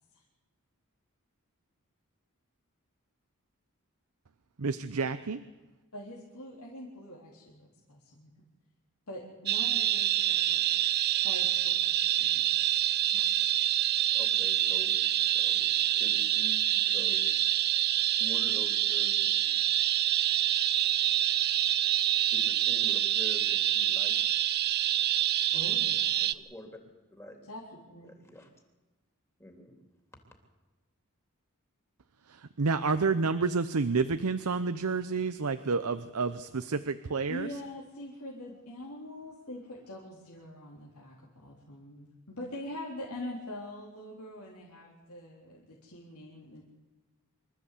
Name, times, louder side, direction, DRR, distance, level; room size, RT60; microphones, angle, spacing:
voice 1, 4.6-5.4 32.3-37.5, right 4 dB, 80° right, 11 dB, 0.7 m, -29 dB
voice 2, 5.9-8.3 9.1-10.7 11.2-12.4 13.1-13.3 25.5-26.2 27.5-28.1 37.3-46.6, left 1 dB, 80° left, -3 dB, 3.6 m, -44 dB
sound 1, 9.5-26.3, right 12 dB, 45° right, 0.6 m, -26 dB
voice 3, 14.1-15.0 15.2-17.6 18.2-19.5 22.3-24.2 26.2-26.8 27.1-27.4 28.0-28.5 29.4-29.8, left 1 dB, 10° left, 3 dB, 3.3 m, -47 dB
25.5 x 13.5 x 8.4 m, 1.2 s
head